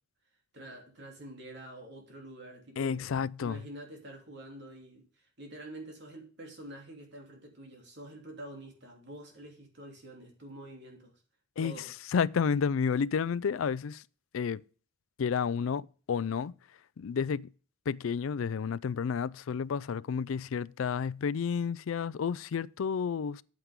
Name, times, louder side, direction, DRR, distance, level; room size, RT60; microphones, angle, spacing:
voice 1, 0.5-3.1 3.4-11.1 11.6-11.9, right 1 dB, 60° right, 3.1 m, -47 dB
voice 2, 2.8-3.6 11.6-11.7 12.1-14.0 14.3-14.6 15.2-16.5 17.0-17.5 17.9-23.4, left 6 dB, 80° left, 0.4 m, -31 dB
9.7 x 9.0 x 3.6 m
head